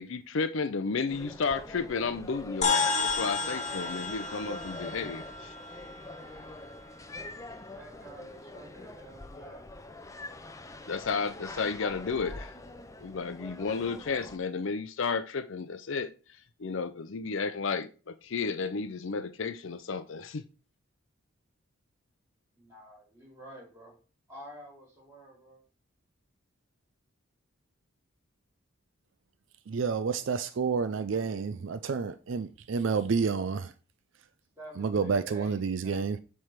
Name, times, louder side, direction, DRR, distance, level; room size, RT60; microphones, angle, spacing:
voice 1, 0.0-5.5 10.9-12.5 13.0-16.1 16.6-20.4, left 4 dB, 65° left, 0.5 m, -32 dB
sound 1, 1.1-14.4, left 2 dB, 15° left, 0.5 m, -44 dB
sound 2, 2.6-7.2, left 4 dB, 35° left, 1.1 m, -32 dB
voice 2, 7.7-9.7 22.6-24.0 24.3-25.6 34.6-36.1, right 1 dB, 15° right, 4.4 m, -49 dB
voice 3, 29.7-33.7 34.8-36.2, right 5 dB, 65° right, 0.4 m, -29 dB
7.7 x 3.4 x 5.8 m
head